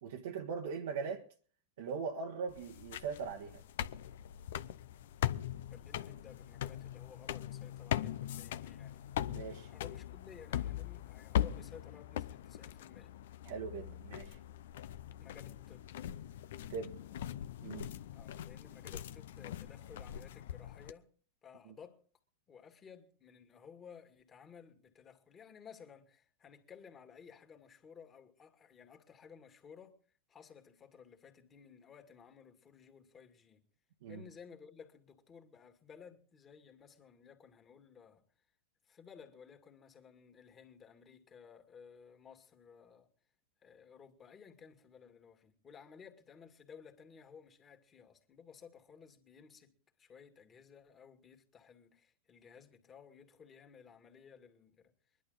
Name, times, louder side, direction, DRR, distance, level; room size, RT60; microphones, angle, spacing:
voice 1, 0.0-1.2 1.8-3.6 9.3-9.7 13.4-14.4 16.7-17.0 17.6-17.9 21.7-21.8 34.0-34.2, right 5 dB, 70° right, 1.4 m, -40 dB
sound 1, 2.5-20.9, left 11 dB, 65° left, 0.7 m, -41 dB
voice 2, 5.7-9.1 9.7-13.1 15.2-16.1 18.1-21.1 21.4-22.0 22.5-30.0 30.3-33.6 34.1-38.2 38.8-43.1 43.6-55.2, left 6 dB, 25° left, 2.2 m, -56 dB
22.5 x 11.5 x 3.9 m
hypercardioid pair, 100°, 0 cm